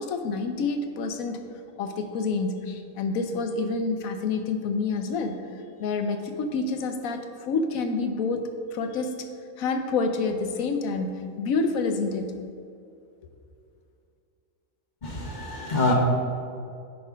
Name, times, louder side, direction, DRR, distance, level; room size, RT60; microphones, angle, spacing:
voice 1, 0.0-1.4 1.8-5.4 5.8-8.4 8.7-9.3 9.6-12.3, left 4 dB, 85° left, 6 dB, 1.2 m, -28 dB
voice 2, 15.0-15.9, left 2 dB, 35° left, 0 dB, 1.1 m, -26 dB
10.5 x 4.3 x 5.1 m, 2.4 s
omnidirectional pair, 1.4 m